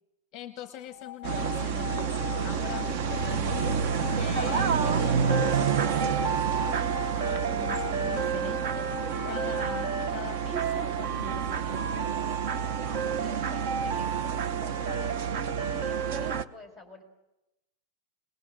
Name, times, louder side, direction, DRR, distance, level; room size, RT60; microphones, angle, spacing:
voice 1, 0.3-3.7 4.2-12.2, left 9 dB, 20° left, 8 dB, 1.0 m, -43 dB
sound 1, 0.9-11.0, left 15 dB, 40° left, 0.7 m, -41 dB
sound 2, 1.2-16.4, right 7 dB, 35° right, 0.8 m, -28 dB
voice 2, 12.7-17.0, left 1 dB, 5° right, 1 dB, 4.3 m, -49 dB
22.5 x 20.5 x 7.6 m, 0.95 s
supercardioid pair, 180°, 0 cm